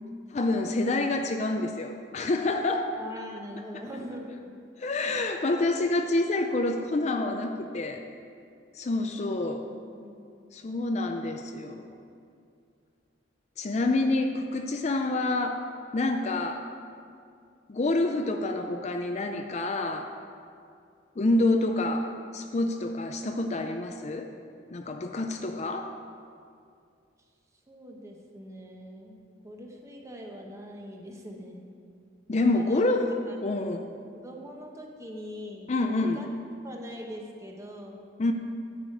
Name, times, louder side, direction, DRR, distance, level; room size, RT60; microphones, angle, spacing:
voice 1, 0.3-2.9 4.8-8.0 8.8-9.7 10.5-11.9 13.6-15.6 15.9-16.6 17.7-20.1 21.2-24.3 24.7-25.9 32.3-33.1 33.4-33.9 35.7-36.2 38.2-38.3, left 2 dB, 35° left, 5 dB, 0.4 m, -27 dB
voice 2, 2.9-4.6 9.9-10.1 27.7-31.7 32.5-32.9 33.3-33.4 34.2-36.3 36.6-38.0, equal, 15° right, 0 dB, 1.0 m, -42 dB
10.0 x 5.0 x 7.7 m, 2.4 s
head